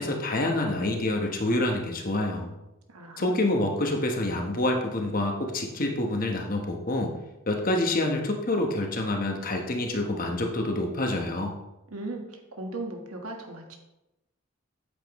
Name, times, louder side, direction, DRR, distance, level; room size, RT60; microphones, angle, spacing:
voice 1, 0.0-2.5 3.2-7.2 7.5-11.5, left 1 dB, 40° left, 2 dB, 1.1 m, -27 dB
voice 2, 2.9-3.4 11.9-13.8, right 2 dB, 90° right, 2 dB, 1.6 m, -37 dB
8.7 x 8.4 x 3.1 m, 0.95 s
head